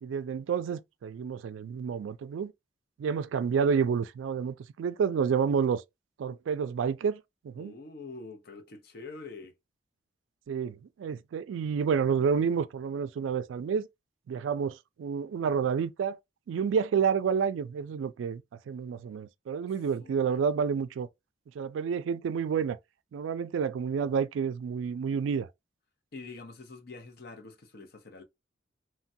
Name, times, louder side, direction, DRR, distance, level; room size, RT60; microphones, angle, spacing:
voice 1, 0.0-2.5 3.0-5.8 6.2-7.7 10.5-13.9 14.3-16.2 16.5-18.4 18.7-21.1 21.6-22.8 23.1-25.5, right 6 dB, 80° right, 0.3 m, -29 dB
voice 2, 7.5-9.5 20.0-20.4 26.1-28.2, left 3 dB, 55° left, 0.6 m, -45 dB
3.2 x 2.2 x 2.6 m
head